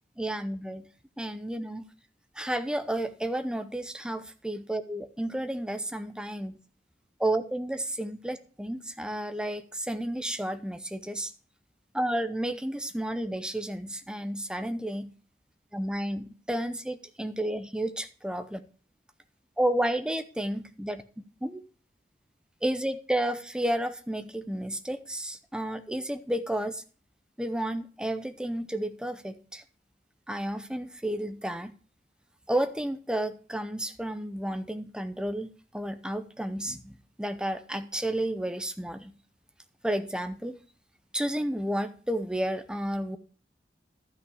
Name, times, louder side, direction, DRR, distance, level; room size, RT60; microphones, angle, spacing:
voice 1, 0.2-0.9 1.2-1.8 2.4-6.6 7.2-11.3 11.9-15.1 15.7-18.6 19.6-21.0 21.4-21.6 22.6-26.8 27.4-29.6 30.3-31.7 32.5-39.1 39.8-40.6 41.1-43.2, right 1 dB, 5° right, 0.6 m, -31 dB
12.5 x 5.7 x 4.9 m
head